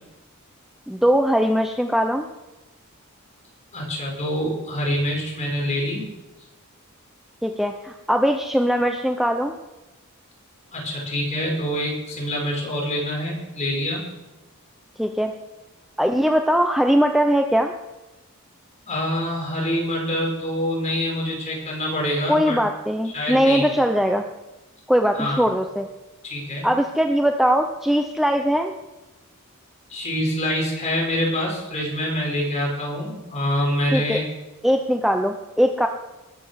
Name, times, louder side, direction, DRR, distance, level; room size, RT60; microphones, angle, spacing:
voice 1, 0.9-2.3 7.4-9.5 15.0-15.3 16.0-17.7 22.3-24.3 24.9-25.9 26.6-28.7 33.9-34.2 34.6-35.9, equal, ahead, 4 dB, 0.7 m, -20 dB
voice 2, 3.7-6.1 10.7-14.0 18.9-22.6 23.1-23.7 25.1-25.4 26.2-26.7 29.9-34.2, equal, 30° left, -2 dB, 5.5 m, -25 dB
21.5 x 7.8 x 6.4 m, 1.0 s
head